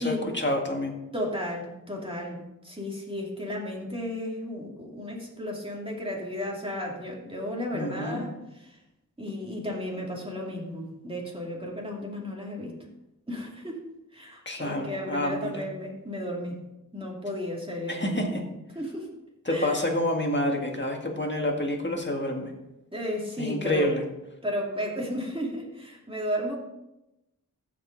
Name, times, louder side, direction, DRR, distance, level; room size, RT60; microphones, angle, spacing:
voice 1, 0.0-0.9 7.7-8.2 14.5-15.6 17.9-18.4 19.5-22.5 23.4-24.0, left 1 dB, 35° left, 1 dB, 1.8 m, -28 dB
voice 2, 1.1-8.8 9.2-12.7 13.3-13.9 14.1-16.6 16.9-18.3 18.7-19.1 19.5-19.8 22.9-23.9 24.4-26.6, equal, 15° right, -2 dB, 2.5 m, -34 dB
14.5 x 5.3 x 4.0 m, 0.93 s
wide cardioid pair, 65°, 33 cm